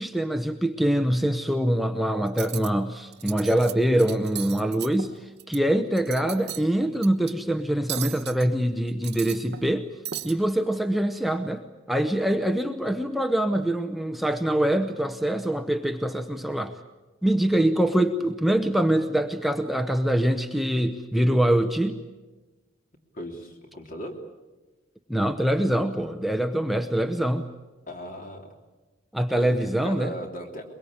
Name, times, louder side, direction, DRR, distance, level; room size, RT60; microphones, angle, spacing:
voice 1, 0.0-9.9 10.2-11.6 11.9-16.8 17.2-22.0 25.1-27.5 29.1-30.1, right 1 dB, ahead, 6 dB, 0.8 m, -24 dB
Cutlery silverware, 2.3-2.7 3.1-3.7 4.0-5.6 5.9-6.7 7.0-7.3 7.9-8.5 8.9-9.8 10.1-10.3, right 11 dB, 55° right, 1.2 m, -36 dB
voice 2, 23.1-24.1 27.9-28.5 29.3-30.6, equal, 40° left, 3 dB, 3.3 m, -37 dB
22.5 x 22.5 x 8.6 m, 1.2 s
head